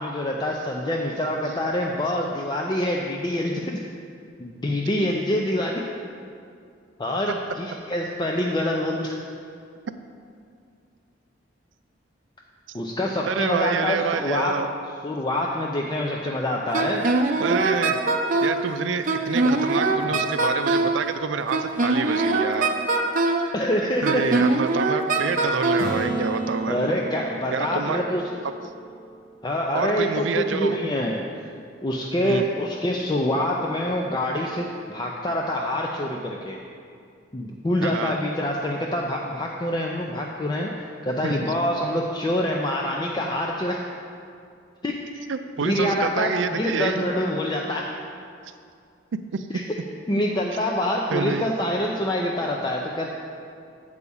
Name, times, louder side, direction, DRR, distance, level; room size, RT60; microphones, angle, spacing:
voice 1, 0.0-3.7 4.4-5.8 7.0-9.2 12.7-14.5 15.0-17.0 20.0-20.1 23.5-24.0 26.7-28.2 29.4-31.2 31.8-36.6 37.3-43.8 44.8-45.0 45.6-47.8 49.5-49.6 50.1-53.1, left 1 dB, 25° left, -1 dB, 0.5 m, -26 dB
voice 2, 13.1-14.7 17.4-18.0 18.4-22.7 23.5-23.6 24.0-26.8 27.5-28.0 29.7-30.8 32.2-32.4 37.8-38.2 41.2-41.3 45.3-47.1 49.1-49.6 51.1-51.5, right 5 dB, 85° right, 9 dB, 0.4 m, -27 dB
Wind instrument woodwind instrument, 16.7-18.6 19.1-21.0 21.5-23.5 24.1-25.9, right 2 dB, 45° right, 0.7 m, -22 dB
Acoustic guitar / Strum, 25.8-29.6 34.4-34.5, right 2 dB, 85° left, 1.5 m, -33 dB
8.2 x 4.9 x 7.0 m, 2.3 s
head